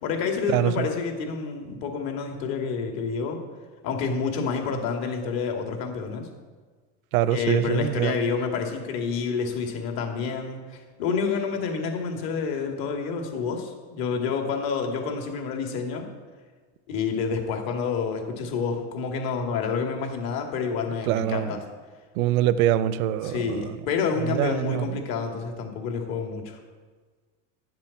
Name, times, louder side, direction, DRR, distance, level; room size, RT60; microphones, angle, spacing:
voice 1, 0.0-3.4 3.8-6.3 7.3-16.1 16.9-21.6 23.2-26.6, left 5 dB, 60° left, 2.5 m, -28 dB
voice 2, 0.5-0.9 7.1-8.2 21.1-21.6 22.2-23.8 24.3-24.9, right 12 dB, 90° right, 0.7 m, -24 dB
11.5 x 7.5 x 7.2 m
supercardioid pair, 120°, 41 cm